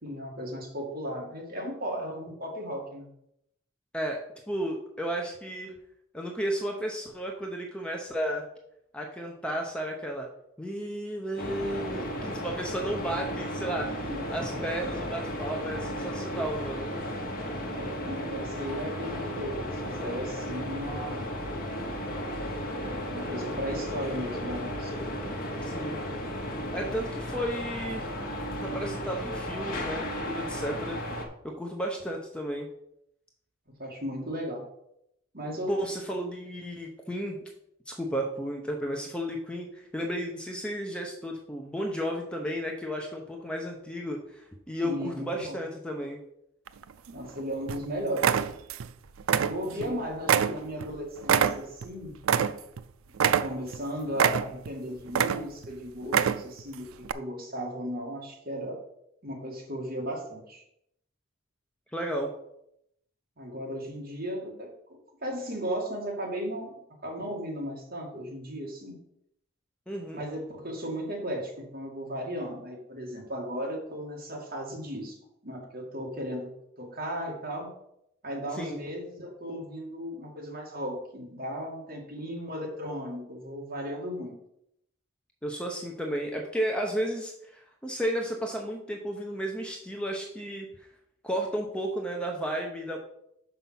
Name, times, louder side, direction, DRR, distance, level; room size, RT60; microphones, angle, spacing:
voice 1, 0.0-3.1 14.0-14.6 17.6-21.4 23.1-24.9 33.8-34.6 35.3-35.7 44.8-45.6 47.1-48.4 49.4-52.1 53.4-58.8 59.2-60.6 63.4-64.7 65.2-66.7 67.0-69.0 70.1-75.2 75.4-77.7 78.2-84.3, equal, 45° right, -2 dB, 2.3 m, -36 dB
voice 2, 3.9-5.7 6.1-8.5 8.9-10.3 10.6-17.0 25.6-26.0 26.7-28.1 28.6-31.0 31.4-32.7 35.7-37.4 37.9-46.2 49.8-50.0 61.9-62.3 69.9-70.2 78.5-78.8 85.4-90.9 91.2-93.0, equal, 5° left, 1 dB, 0.7 m, -33 dB
sound 1, 11.4-31.3, equal, 45° left, 1.3 m, -34 dB
sound 2, 46.7-47.3 47.7-47.8 48.2-48.9 49.2-49.9 50.3-52.8 53.2-53.8 54.2-54.7 55.1-55.7 56.0-56.6 57.0-57.1, right 7 dB, 80° right, 0.4 m, -25 dB
5.9 x 5.5 x 5.8 m, 0.76 s
head